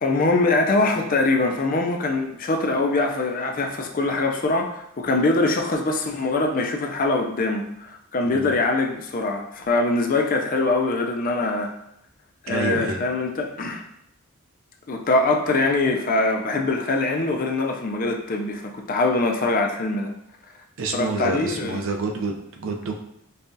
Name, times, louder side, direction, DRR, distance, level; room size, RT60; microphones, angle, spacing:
voice 1, 0.0-11.7 12.4-13.8 14.9-20.1 20.9-21.8, left 2 dB, 40° left, 3 dB, 0.4 m, -23 dB
voice 2, 8.2-8.5 12.5-13.0 20.8-23.0, right 3 dB, 60° right, 2 dB, 0.5 m, -28 dB
5.3 x 2.3 x 2.6 m, 0.77 s
head